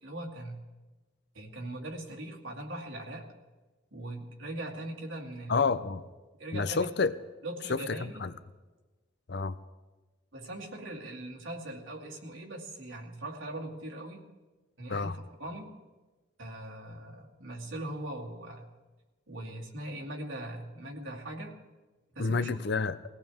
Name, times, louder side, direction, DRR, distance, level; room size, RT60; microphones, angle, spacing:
voice 1, 0.0-0.6 1.3-3.3 3.9-5.7 6.4-6.9 7.4-8.2 10.3-14.2 14.8-15.7 16.4-18.7 19.3-21.6 22.2-22.6, right 1 dB, 85° right, -1 dB, 2.5 m, -40 dB
voice 2, 5.5-6.0 6.5-7.1 7.7-8.3 9.3-9.6 14.9-15.2 22.2-23.0, left 4 dB, 55° left, 13 dB, 0.6 m, -29 dB
22.5 x 17.5 x 3.6 m, 1.2 s
head